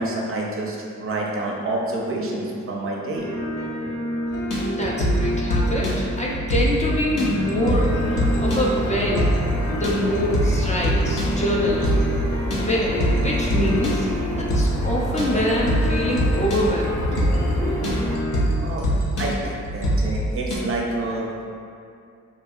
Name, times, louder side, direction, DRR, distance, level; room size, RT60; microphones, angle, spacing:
voice 1, 0.0-3.3 11.8-11.9 18.6-18.8 19.2-21.5, right 2 dB, 45° right, -2 dB, 0.4 m, -28 dB
sound 1, 3.1-18.4, equal, 60° left, 1.0 m, -29 dB
sound 2, 4.3-20.6, equal, 80° left, 0.6 m, -24 dB
voice 2, 4.7-9.3 9.7-11.9 12.6-14.1 14.4-17.0, left 1 dB, 25° left, -5 dB, 0.3 m, -25 dB
sound 3, 7.8-18.2, equal, 5° left, 0.7 m, -30 dB
2.8 x 2.6 x 2.3 m, 2.4 s
cardioid pair, 95°, 31 cm